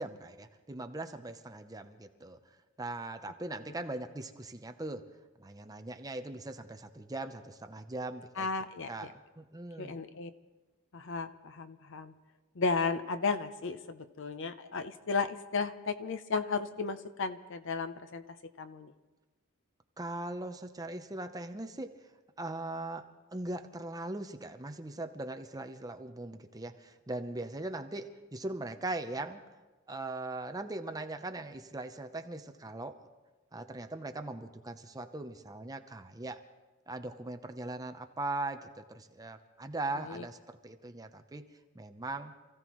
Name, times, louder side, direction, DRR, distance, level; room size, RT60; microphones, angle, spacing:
voice 1, 0.0-2.4 2.8-5.0 5.4-8.5 8.9-10.0 20.0-21.9 22.4-29.4 29.9-33.0 33.5-36.4 36.9-41.4 41.7-42.3, right 2 dB, 15° right, 7 dB, 0.7 m, -40 dB
voice 2, 8.4-9.1 9.8-10.3 10.9-12.1 12.6-18.2 18.6-18.9 40.1-40.2, left 4 dB, 60° left, 11 dB, 0.7 m, -34 dB
27.5 x 15.5 x 3.1 m, 1.2 s
head